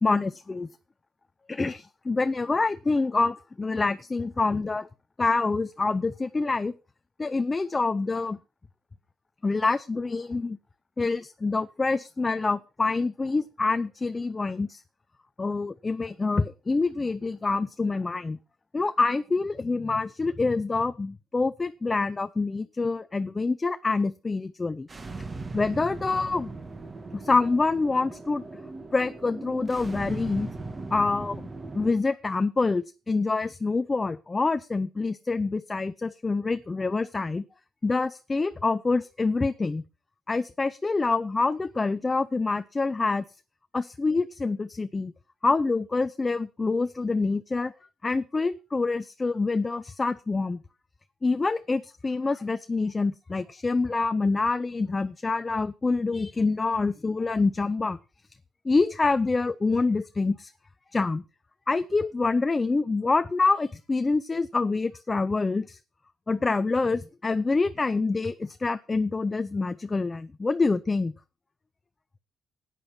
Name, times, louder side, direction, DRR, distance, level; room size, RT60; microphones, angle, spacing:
voice 1, 0.0-0.7 1.5-4.9 5.2-6.7 7.2-8.4 9.4-10.6 11.0-14.8 15.4-18.4 18.7-24.9 25.5-26.5 27.1-28.4 28.9-30.5 30.9-31.5 31.7-37.4 37.8-39.8 40.3-43.2 43.7-45.1 45.4-47.7 48.0-50.6 51.2-58.0 58.6-60.5 60.9-61.2 61.7-65.8 66.3-71.1, left 3 dB, 25° left, 0.6 m, -26 dB
sound 1, 24.9-31.9, right 3 dB, 30° right, 1.7 m, -38 dB
11.5 x 9.1 x 5.9 m
cardioid pair, 90°, 0 cm